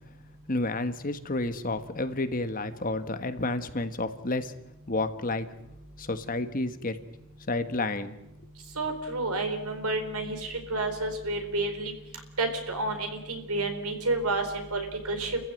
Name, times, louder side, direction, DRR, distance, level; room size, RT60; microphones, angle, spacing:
voice 1, 0.5-4.5 4.9-5.5 6.0-7.0 7.5-8.1, left 2 dB, 40° left, 9 dB, 1.4 m, -30 dB
voice 2, 8.8-11.9 12.4-15.4, right 2 dB, 90° right, 6 dB, 4.5 m, -30 dB
30.0 x 15.0 x 9.2 m, 0.89 s
head